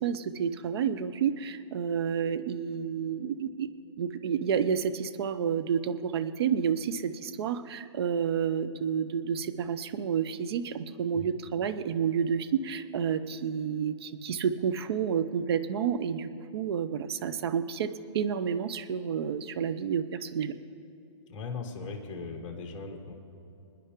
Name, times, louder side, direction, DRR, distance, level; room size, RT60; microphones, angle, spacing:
voice 1, 0.0-3.7 4.0-20.5, right 7 dB, 55° right, 11 dB, 0.7 m, -30 dB
voice 2, 21.3-23.1, left 4 dB, 30° left, 1 dB, 1.7 m, -38 dB
25.5 x 10.0 x 3.7 m, 2.8 s
hypercardioid pair, 140°, 16 cm